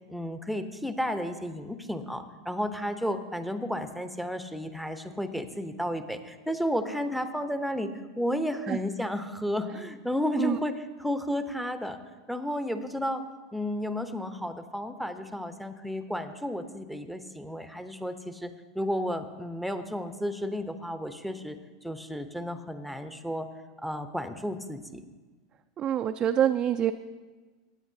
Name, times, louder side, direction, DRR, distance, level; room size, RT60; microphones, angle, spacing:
voice 1, 0.1-10.7 11.0-12.0 12.3-13.2 13.5-23.5 23.8-25.0, equal, ahead, 9 dB, 0.8 m, -32 dB
voice 2, 25.8-26.9, right 10 dB, 35° right, 7 dB, 0.4 m, -25 dB
16.0 x 9.5 x 2.7 m, 1.3 s
hypercardioid pair, 95°, 2 cm